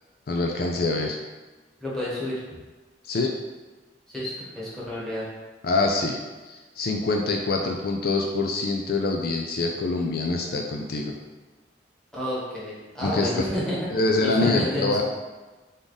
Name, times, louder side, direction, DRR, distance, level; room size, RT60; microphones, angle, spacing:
voice 1, 0.3-1.2 3.0-3.3 5.6-6.2 6.4-11.1 13.0-13.5 13.9-15.0, left 3 dB, 55° left, 1 dB, 0.4 m, -25 dB
voice 2, 1.8-2.6 4.1-5.3 12.1-13.8 14.2-15.0, left 1 dB, 5° left, -8 dB, 1.3 m, -30 dB
3.6 x 3.6 x 3.9 m, 1.2 s
head